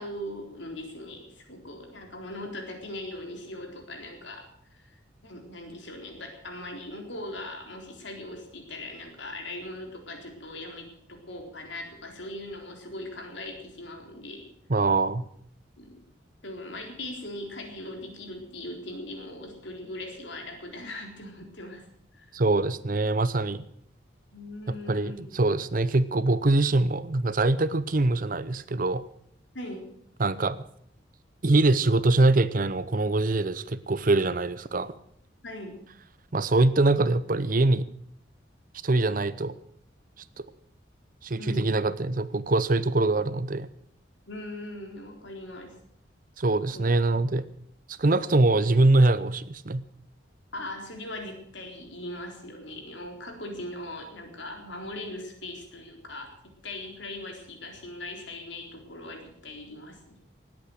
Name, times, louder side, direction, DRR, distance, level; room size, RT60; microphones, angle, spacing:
voice 1, 0.0-14.5 15.8-16.0 16.4-21.9 22.1-22.3 24.3-25.3 29.5-29.9 35.4-35.8 41.4-41.7 44.3-45.7 46.7-46.8 50.5-60.2, left 1 dB, 65° left, 3 dB, 4.0 m, -40 dB
voice 2, 14.7-15.2 22.3-23.6 24.7-29.0 30.2-30.6 31.4-34.9 36.3-37.9 38.8-39.5 40.4-40.5 41.2-43.7 46.4-47.5 47.9-49.8, right 2 dB, 45° right, 16 dB, 0.7 m, -23 dB
19.0 x 8.7 x 8.0 m, 0.69 s
head